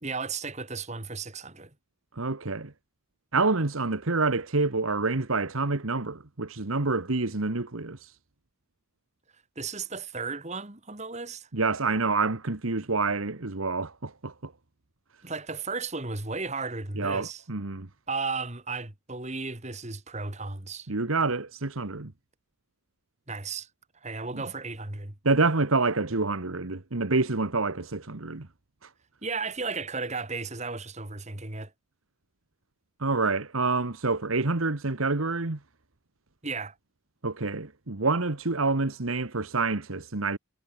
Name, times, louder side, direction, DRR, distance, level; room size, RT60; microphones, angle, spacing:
voice 1, 0.0-1.7 9.6-11.5 15.2-17.4 18.1-20.9 23.3-23.7 24.0-25.1 29.2-31.7 36.4-36.7, right 4 dB, 30° right, 2.4 m, -34 dB
voice 2, 2.1-2.7 3.3-8.1 11.5-14.5 17.0-17.9 20.9-22.1 24.3-24.4 25.2-28.5 28.8-28.9 33.0-35.6 37.2-40.4, right 3 dB, 75° right, 1.5 m, -27 dB
head